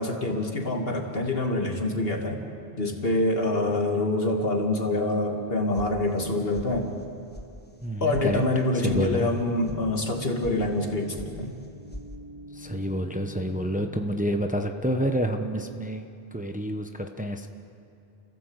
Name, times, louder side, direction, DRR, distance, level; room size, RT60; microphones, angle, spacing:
voice 1, 0.0-2.4 2.8-6.9 8.0-11.5, left 2 dB, 70° left, 2 dB, 2.6 m, -26 dB
sound 1, 5.8-6.3 6.5-7.1 7.3-7.5 7.8-8.3 8.5-9.0 9.3-9.8 10.1-10.6 10.8-11.3 11.6-12.1, left 1 dB, 10° left, 1.5 m, -41 dB
voice 2, 7.8-8.4 8.7-9.3 12.6-17.5, equal, 10° right, 5 dB, 1.0 m, -28 dB
sound 2, 8.8-14.1, left 2 dB, 35° right, 1.8 m, -44 dB
29.5 x 16.5 x 8.1 m, 2.6 s
omnidirectional pair, 1.0 m